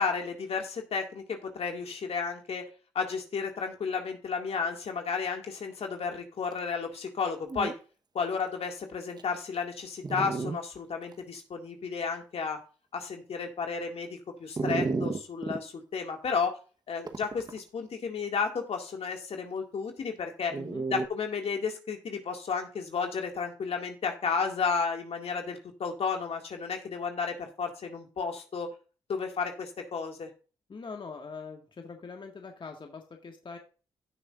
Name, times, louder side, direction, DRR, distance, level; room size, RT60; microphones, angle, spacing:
voice 1, 0.0-2.6 2.9-7.7 8.1-12.6 12.9-16.5 16.9-20.5 20.9-28.7 29.1-30.3, left 5 dB, 60° left, 3 dB, 2.1 m, -32 dB
Dog, 7.1-7.2 7.4-7.7 8.4-8.5 9.2-9.3 10.0-10.6 11.1-11.2 14.6-15.6 17.1-17.6 20.5-21.1, right 4 dB, 35° right, 1.1 m, -31 dB
voice 2, 20.6-20.9 30.7-33.6, left 4 dB, 45° left, 3 dB, 1.8 m, -43 dB
16.0 x 6.5 x 2.5 m, 0.36 s
supercardioid pair, 45°, 12 cm